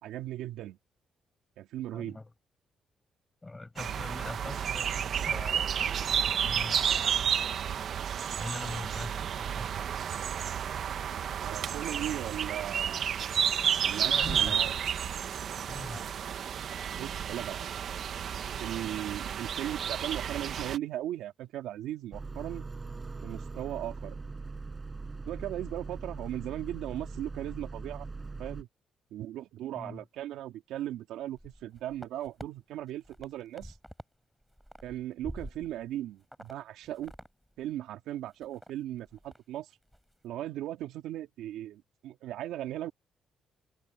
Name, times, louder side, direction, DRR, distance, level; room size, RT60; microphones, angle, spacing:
voice 1, 0.0-0.8 1.6-2.2 11.4-13.0 13.9-14.7 17.0-17.7 18.6-22.6 23.2-24.2 25.3-28.1 28.4-28.7 29.1-33.7 34.8-37.1 37.6-39.7 40.2-42.9, right 13 dB, 85° right, 2.8 m, -37 dB
voice 2, 1.9-2.3 3.4-7.8 8.4-10.1 14.1-14.6 15.7-16.1 29.7-30.0, left 2 dB, 20° left, 6.4 m, -43 dB
sound 1, 3.8-20.8, right 8 dB, 60° right, 1.4 m, -31 dB
sound 2, 22.1-28.6, right 3 dB, 25° right, 7.9 m, -41 dB
sound 3, 31.3-32.5 32.9-34.1 34.4-35.9 36.3-36.5 36.8-37.3 37.6-37.7 38.1-38.7 39.1-39.4 39.7-40.0, equal, ahead, 6.1 m, -47 dB
cardioid pair, 90°, 0 cm